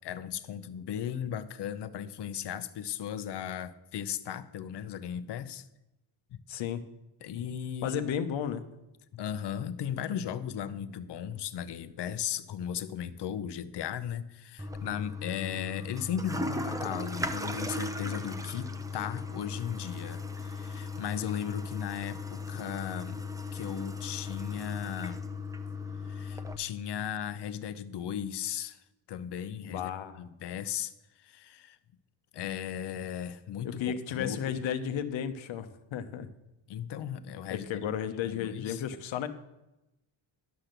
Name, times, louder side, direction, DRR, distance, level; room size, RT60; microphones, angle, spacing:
voice 1, 0.0-5.7 6.3-6.4 7.2-8.0 9.1-23.3 23.5-25.2 26.0-28.8 29.1-29.9 30.2-31.8 32.3-34.6 36.7-37.9 38.2-38.8, left 9 dB, 60° left, 13 dB, 0.8 m, -36 dB
voice 2, 6.5-6.8 7.8-8.6 29.7-30.2 33.6-36.3 37.5-39.3, left 8 dB, 75° left, 9 dB, 1.1 m, -33 dB
Toilet flush, 14.6-26.6, left 3 dB, 5° right, 0.6 m, -37 dB
11.5 x 5.9 x 6.7 m, 0.93 s
cardioid pair, 110°, 47 cm